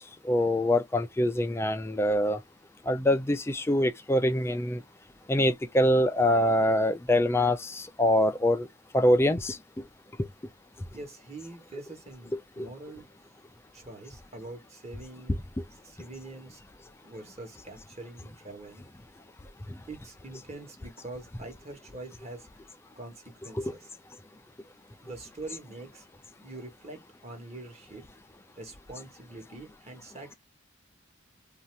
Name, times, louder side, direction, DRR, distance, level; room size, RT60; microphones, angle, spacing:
voice 1, 0.2-2.4 2.9-4.8 5.3-8.7 8.9-9.6 12.3-12.7 15.6-15.7 23.6-23.7, left 1 dB, 10° left, 0.4 m, -24 dB
voice 2, 10.9-13.1 13.7-15.4 15.8-16.6 17.0-18.8 19.9-22.5 22.9-23.8 25.0-26.0 26.4-28.0 28.6-30.3, right 2 dB, 30° right, 1.2 m, -44 dB
2.7 x 2.4 x 3.1 m
head